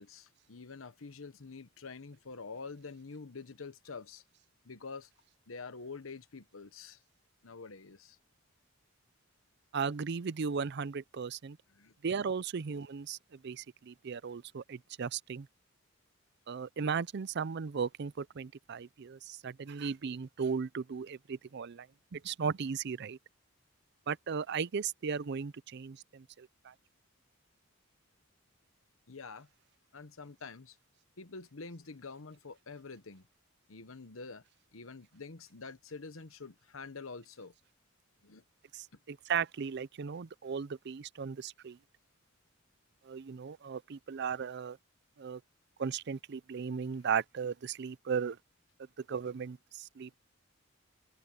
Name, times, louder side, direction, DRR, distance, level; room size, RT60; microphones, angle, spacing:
voice 1, 0.0-4.2 4.6-5.1 5.5-7.0 7.4-8.2 11.7-11.9 29.1-29.5 29.9-30.8 31.2-33.3 33.7-34.4 34.7-37.5 38.2-38.4, left 4 dB, 85° left, 1.1 m, -47 dB
voice 2, 9.7-11.6 12.0-15.5 16.5-21.9 22.1-23.2 24.1-26.7 38.7-41.8 43.0-44.8 45.2-45.4 45.8-48.4 49.1-50.2, right 6 dB, 55° right, 0.5 m, -36 dB
head